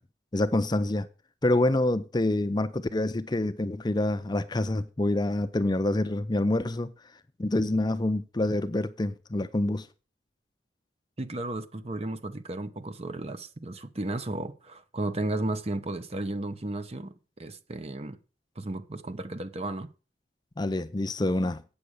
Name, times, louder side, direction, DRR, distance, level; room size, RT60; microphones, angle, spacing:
voice 1, 0.3-1.1 1.4-6.9 7.4-9.9 20.6-21.6, left 1 dB, 25° left, 0.5 m, -26 dB
voice 2, 11.2-18.2 18.6-19.9, right 2 dB, 35° right, 0.9 m, -34 dB
8.7 x 6.8 x 6.3 m
head